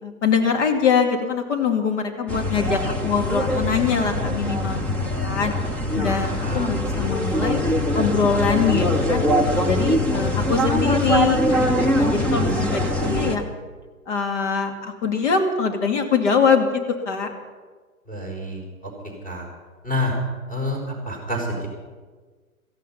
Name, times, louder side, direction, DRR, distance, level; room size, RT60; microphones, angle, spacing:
voice 1, 0.0-4.9 5.2-5.5 5.9-7.6 7.9-9.3 9.6-11.7 12.0-13.4 14.1-17.3, left 6 dB, 50° left, 5 dB, 2.5 m, -23 dB
sound 1, 2.3-13.4, equal, 5° left, 0.6 m, -22 dB
voice 2, 6.2-6.8 18.1-18.6 19.2-19.5 19.8-20.2 20.5-21.7, left 1 dB, 20° left, -1 dB, 4.9 m, -28 dB
17.0 x 14.5 x 5.7 m, 1.4 s
figure-of-eight pair, 120°, 44 cm